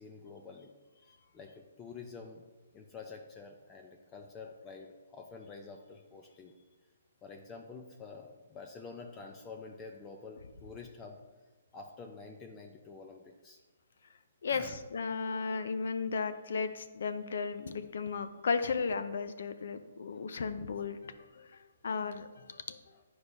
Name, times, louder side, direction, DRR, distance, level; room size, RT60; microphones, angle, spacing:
voice 1, 0.0-2.4 2.7-6.6 7.2-11.2 11.7-13.6 14.5-14.8 20.1-20.2 22.9-23.0, left 4 dB, 20° left, 2 dB, 0.6 m, -48 dB
voice 2, 14.4-22.8, left 5 dB, 65° left, 10 dB, 0.6 m, -35 dB
9.5 x 4.8 x 2.6 m, 1.2 s
hypercardioid pair, 140°, 0 cm